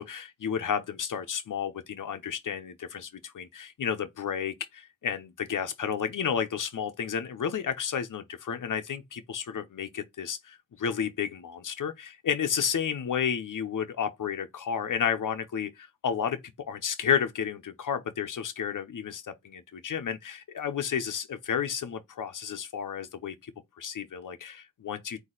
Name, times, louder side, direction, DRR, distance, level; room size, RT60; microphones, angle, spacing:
voice 1, 0.0-16.4 16.7-23.5 23.8-25.2, left 7 dB, 80° left, 0.7 m, -32 dB
4.1 x 2.7 x 3.8 m
wide cardioid pair, 80°, 31 cm